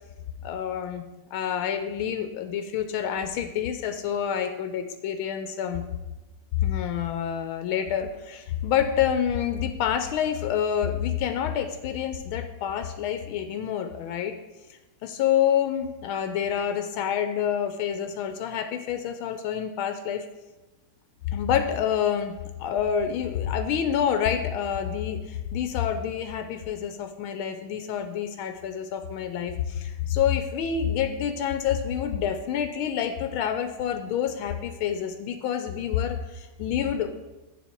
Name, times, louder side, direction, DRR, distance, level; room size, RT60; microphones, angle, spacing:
voice 1, 0.4-1.0 1.3-5.8 6.6-14.3 15.0-20.3 21.3-37.2, left 9 dB, 85° left, 8 dB, 1.4 m, -27 dB
8.1 x 7.1 x 4.4 m, 1.1 s
omnidirectional pair, 2.3 m